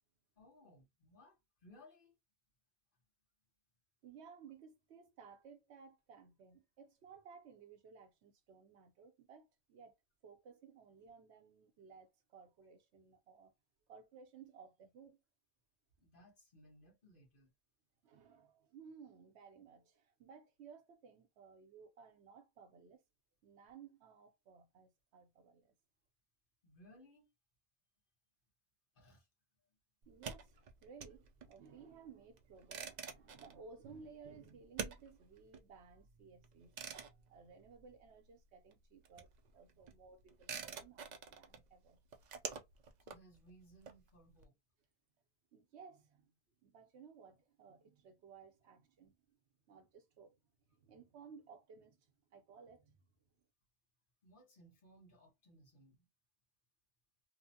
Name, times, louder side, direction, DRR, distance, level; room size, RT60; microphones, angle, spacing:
voice 1, 0.3-2.2 16.0-17.5 26.6-27.3 28.9-29.3 29.6-29.8 43.0-44.6 54.2-56.1, equal, 55° left, 1.3 m, -63 dB
voice 2, 4.0-9.9 10.2-13.5 13.9-15.2 18.0-23.0 23.4-25.7 30.1-36.8 37.3-42.0 45.5-46.3 46.6-49.2 49.7-50.4 50.8-53.0, right 6 dB, 80° right, 1.0 m, -58 dB
sound 1, 30.0-38.4 38.7-44.4, right 6 dB, 55° right, 0.5 m, -49 dB
3.0 x 2.1 x 2.7 m
omnidirectional pair, 1.1 m